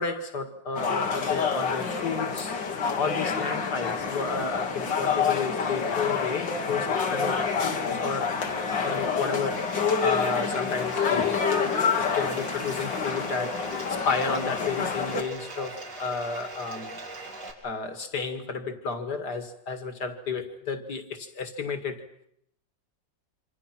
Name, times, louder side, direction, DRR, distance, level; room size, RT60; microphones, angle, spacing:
voice 1, 0.0-2.6 3.0-8.3 8.7-9.6 10.0-11.4 12.0-13.6 14.1-17.0 17.6-22.0, left 5 dB, 65° left, 2.6 m, -32 dB
sound 1, 0.7-15.2, left 5 dB, 85° left, 2.6 m, -28 dB
Bathtub (filling or washing), 9.5-17.5, right 2 dB, 65° right, 4.4 m, -41 dB
26.5 x 26.5 x 6.0 m
omnidirectional pair, 1.9 m